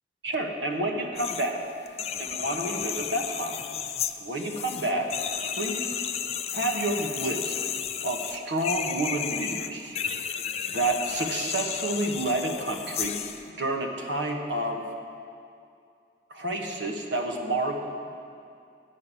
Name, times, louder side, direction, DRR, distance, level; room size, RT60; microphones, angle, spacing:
voice 1, 0.2-1.6 2.2-3.6 4.2-5.1 5.6-5.9 6.5-7.6 8.0-9.9 10.7-13.2 13.6-14.8 16.3-17.8, right 1 dB, 85° right, 2 dB, 1.1 m, -29 dB
sound 1, 1.1-1.5 1.9-13.4, left 8 dB, 35° left, 0.3 m, -33 dB
10.5 x 5.4 x 8.4 m, 2.5 s
head